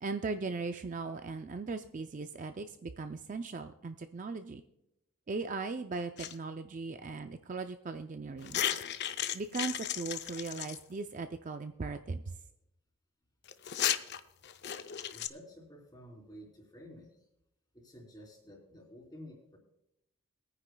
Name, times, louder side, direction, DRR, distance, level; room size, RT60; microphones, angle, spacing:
voice 1, 0.0-4.6 5.3-8.6 9.3-12.4, right 4 dB, 35° right, 8 dB, 0.4 m, -38 dB
sound 1, 6.2-6.3 8.4-10.8 13.5-15.3, left 10 dB, 50° left, 0.5 m, -34 dB
voice 2, 15.1-17.3 17.7-19.6, equal, 20° left, 0 dB, 3.1 m, -52 dB
21.5 x 9.7 x 2.2 m, 0.82 s
head